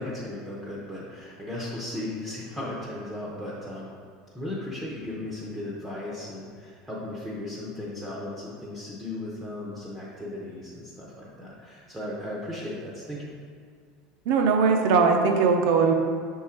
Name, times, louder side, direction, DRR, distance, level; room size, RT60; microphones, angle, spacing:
voice 1, 0.0-3.9 4.3-13.3, left 1 dB, 5° right, -5 dB, 0.7 m, -36 dB
voice 2, 14.3-15.9, right 5 dB, 65° right, 3 dB, 0.6 m, -20 dB
6.2 x 3.7 x 4.4 m, 2.1 s
supercardioid pair, 165°, 0 cm